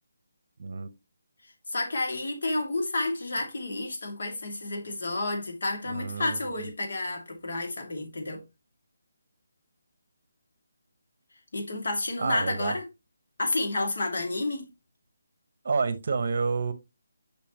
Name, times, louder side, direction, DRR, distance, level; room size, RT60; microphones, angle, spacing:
voice 1, 1.7-8.4 11.5-12.9 13.4-14.7, left 2 dB, 65° left, 2.5 m, -30 dB
voice 2, 5.9-6.7 12.2-12.8 15.6-16.7, right 4 dB, 50° right, 1.1 m, -29 dB
6.8 x 5.6 x 3.0 m
hypercardioid pair, 165°, 0 cm